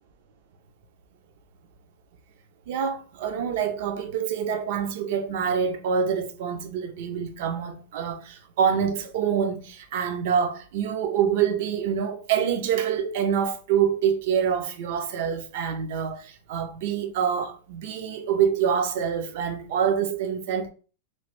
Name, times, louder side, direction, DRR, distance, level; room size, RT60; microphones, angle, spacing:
voice 1, 2.7-20.7, right 7 dB, 65° right, 0.5 m, -26 dB
3.1 x 2.0 x 2.9 m
supercardioid pair, 145°, 0 cm